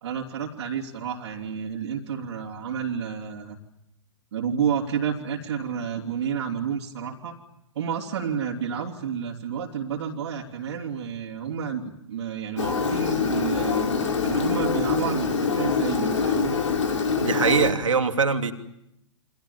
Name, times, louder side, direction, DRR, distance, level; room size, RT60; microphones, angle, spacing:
voice 1, 0.0-3.6 4.3-7.3 7.7-13.9 14.2-16.6, right 7 dB, 60° right, -2 dB, 3.6 m, -30 dB
Engine, 12.6-17.7, left 5 dB, 70° left, 5.2 m, -24 dB
voice 2, 17.2-18.5, right 5 dB, 75° right, 6 dB, 3.2 m, -22 dB
30.0 x 25.5 x 7.4 m, 0.80 s
figure-of-eight pair, 115°, 16 cm